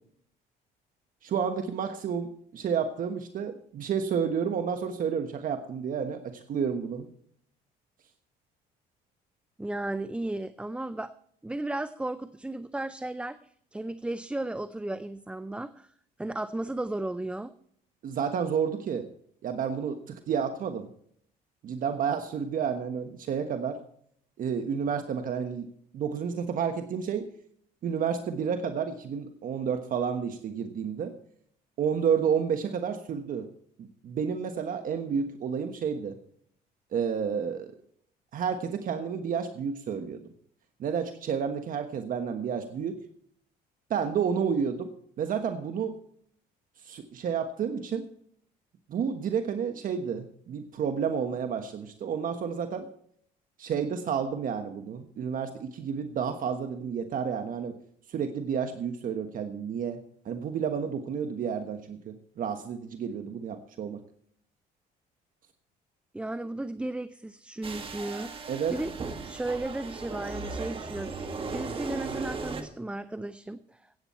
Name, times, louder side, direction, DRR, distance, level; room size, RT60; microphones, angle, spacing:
voice 1, 1.2-7.1 18.0-19.1 19.4-20.9 21.6-23.8 24.4-25.7 25.9-27.3 27.8-31.1 31.8-33.5 33.8-36.2 36.9-37.7 38.3-40.2 40.8-43.0 43.9-44.9 45.2-46.0 46.8-48.0 48.9-52.9 53.6-57.7 58.1-60.0 60.2-64.0 68.5-68.7, right 7 dB, 55° right, 7 dB, 1.3 m, -30 dB
voice 2, 9.6-11.1 11.4-13.4 13.7-15.9 16.2-17.5 66.1-68.9 69.2-71.1 71.5-74.0, right 2 dB, 5° right, 13 dB, 0.5 m, -34 dB
sound 1, 67.6-72.6, right 4 dB, 30° right, 1.9 m, -37 dB
16.0 x 8.9 x 4.3 m, 0.64 s
cardioid pair, 110°, 17 cm